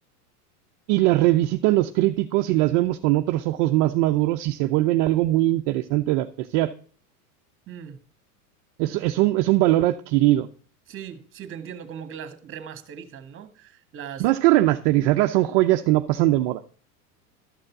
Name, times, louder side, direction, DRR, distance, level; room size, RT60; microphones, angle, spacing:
voice 1, 0.9-6.7 8.8-10.5 14.2-16.6, right 16 dB, 50° right, 5 dB, 0.8 m, -21 dB
voice 2, 7.7-8.0 10.9-14.3, right 8 dB, 25° right, 10 dB, 1.8 m, -39 dB
13.0 x 6.5 x 5.9 m, 0.43 s
supercardioid pair, 130°, 47 cm